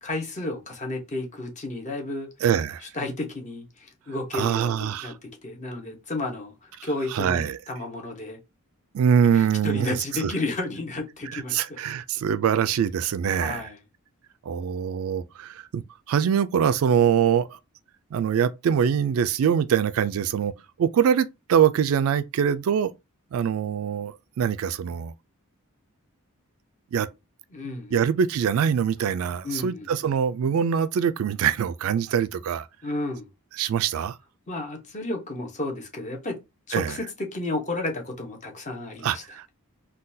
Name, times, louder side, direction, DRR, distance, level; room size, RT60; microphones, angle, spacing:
voice 1, 0.0-2.3 2.9-5.1 5.4-7.4 7.7-8.4 9.3-11.8 13.4-13.8 27.5-28.0 29.4-29.9 32.8-33.3 34.5-36.4 36.7-39.2, left 2 dB, 35° left, 0.9 m, -32 dB
voice 2, 2.4-2.9 4.3-5.1 6.8-7.6 8.9-10.3 11.3-13.7 14.4-17.6 18.1-20.5 20.8-22.9 23.3-25.1 26.9-27.1 27.9-32.7 33.6-34.2 36.7-36.9 39.0-39.5, right 8 dB, 70° right, 0.3 m, -24 dB
3.7 x 2.2 x 2.6 m
head